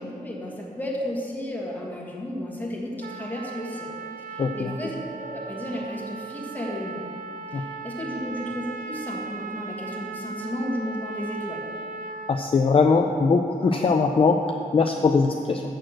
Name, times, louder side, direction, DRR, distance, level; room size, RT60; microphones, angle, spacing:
voice 1, 0.0-3.9 4.3-7.0 7.5-11.6, left 1 dB, 10° left, -3 dB, 1.5 m, -33 dB
Trumpet, 3.0-12.5, right 4 dB, 70° right, 0.4 m, -37 dB
voice 2, 4.4-4.7 7.5-7.6 12.3-14.4 14.7-15.6, left 4 dB, 40° left, 3 dB, 0.4 m, -21 dB
6.6 x 6.3 x 7.5 m, 2.6 s
wide cardioid pair, 155°, 15 cm